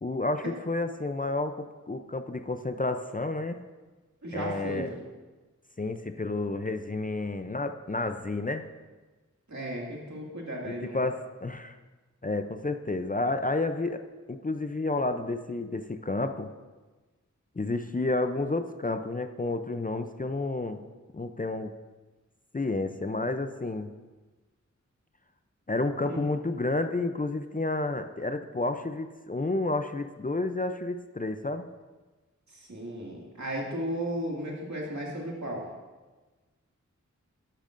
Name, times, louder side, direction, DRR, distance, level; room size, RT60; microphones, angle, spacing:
voice 1, 0.0-3.6 4.3-4.9 5.8-8.7 10.6-11.8 12.2-14.0 14.3-16.5 17.6-20.8 21.1-21.7 22.5-23.9 25.7-31.7, left 2 dB, 30° left, 8 dB, 0.5 m, -30 dB
voice 2, 4.2-5.0 9.5-11.1 26.0-26.2 32.5-35.7, right 1 dB, 65° right, -3 dB, 2.2 m, -35 dB
12.0 x 10.0 x 2.6 m, 1.2 s
wide cardioid pair, 50°, 30 cm